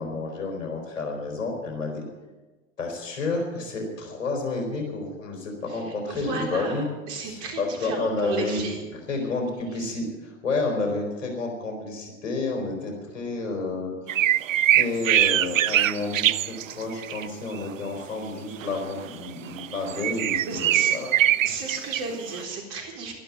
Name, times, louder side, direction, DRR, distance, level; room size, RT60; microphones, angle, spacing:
voice 1, 0.0-2.0 2.8-6.9 7.2-8.6 9.1-13.9 14.7-21.1, left 3 dB, 75° left, 2 dB, 4.5 m, -30 dB
voice 2, 5.7-8.8 9.7-9.9 20.5-20.9 21.4-23.1, right 4 dB, 60° right, 1 dB, 4.1 m, -34 dB
sound 1, 14.1-17.3 17.6-17.7 18.6-22.4, right 12 dB, 80° right, 0.5 m, -23 dB
12.0 x 11.5 x 8.7 m, 1.2 s
figure-of-eight pair, 80°, 38 cm